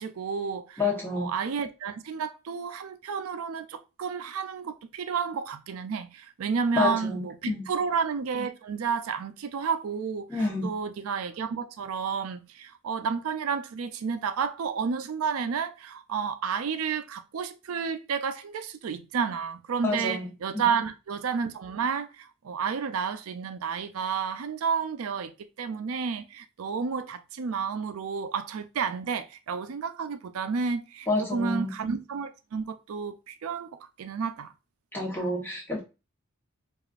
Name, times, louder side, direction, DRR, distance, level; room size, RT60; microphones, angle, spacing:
voice 1, 0.0-0.8 1.2-25.3 25.6-34.5, right 6 dB, 80° right, 0.4 m, -31 dB
voice 2, 0.8-1.3 6.8-7.7 10.3-10.7 19.8-20.3 20.5-20.6 31.1-31.8 34.9-35.8, left 3 dB, 10° left, 1.0 m, -28 dB
4.9 x 2.4 x 2.4 m
head